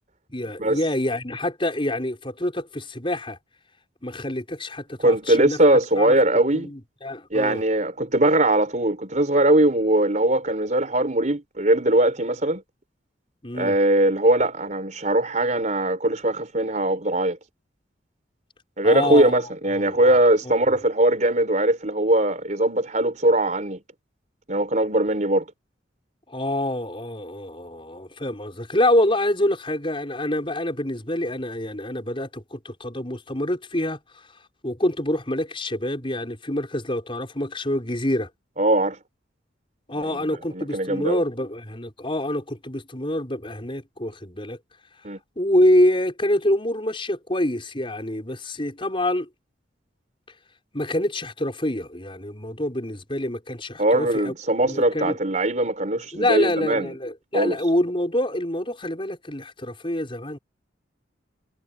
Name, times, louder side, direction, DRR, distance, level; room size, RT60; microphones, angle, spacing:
voice 1, 0.3-3.4 4.0-5.6 6.0-7.6 13.4-13.7 18.8-19.4 19.8-20.2 20.7-20.8 26.3-34.0 34.6-38.3 39.9-44.6 45.4-49.3 50.7-54.3 54.6-55.2 56.1-60.4, left 1 dB, 30° left, 5.8 m, -26 dB
voice 2, 5.0-6.7 7.3-12.6 13.5-17.4 18.8-23.8 24.5-25.4 38.6-39.0 40.1-40.2 40.5-41.2 45.0-45.2 53.8-56.9 57.3-57.6, right 1 dB, 40° right, 4.3 m, -21 dB
head